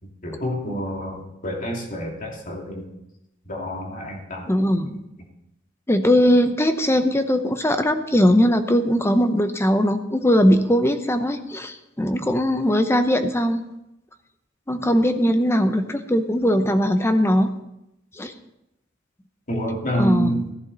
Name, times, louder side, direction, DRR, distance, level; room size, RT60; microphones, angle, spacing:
voice 1, 0.0-2.8 3.5-4.5 19.5-20.5, equal, 45° left, 0 dB, 2.5 m, -28 dB
voice 2, 4.5-5.0 5.9-13.6 14.7-17.5 18.2-18.3 20.0-20.3, equal, 15° left, 8 dB, 0.7 m, -20 dB
15.0 x 10.5 x 4.0 m, 0.87 s
head